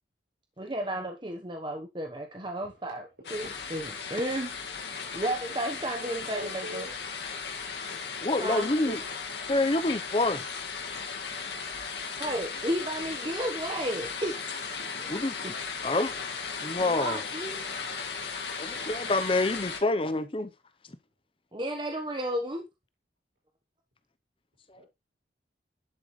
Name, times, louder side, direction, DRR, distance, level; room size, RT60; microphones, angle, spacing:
voice 1, 0.6-3.5 3.7-4.5 5.1-6.9 8.4-8.7 12.2-14.7 15.0-15.1 15.4-15.5 15.8-16.0 16.8-17.6 21.5-22.7, right 1 dB, 25° right, 1.0 m, -33 dB
sound 1, 3.2-19.8, left 5 dB, 70° left, 2.0 m, -36 dB
voice 2, 3.2-3.5 6.0-6.9 8.5-9.2 24.8-24.9, right 1 dB, 65° right, 7.2 m, -44 dB
voice 3, 8.2-9.0 9.5-10.4 15.1-15.4 15.8-16.2 16.6-17.2 18.6-20.5, left 2 dB, 30° left, 0.7 m, -27 dB
11.0 x 7.6 x 3.1 m
head